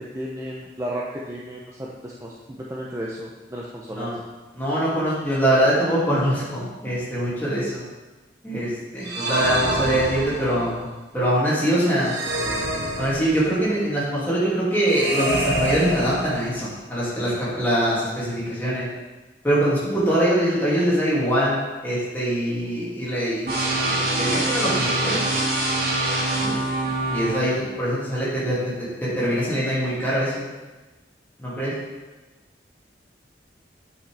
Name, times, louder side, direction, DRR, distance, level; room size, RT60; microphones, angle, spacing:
voice 1, 0.1-4.1, equal, 15° right, -4 dB, 0.6 m, -33 dB
voice 2, 4.5-7.8 8.4-10.9 11.1-12.1 13.0-18.9 19.4-25.2 26.4-30.4 31.4-31.7, right 1 dB, 10° left, -9 dB, 2.5 m, -23 dB
sound 1, 9.0-10.7 12.0-13.7 14.9-16.8, right 1 dB, 75° right, 1.4 m, -27 dB
sound 2, 23.5-27.4, right 2 dB, 55° right, 1.9 m, -24 dB
8.4 x 5.6 x 3.5 m, 1.2 s
head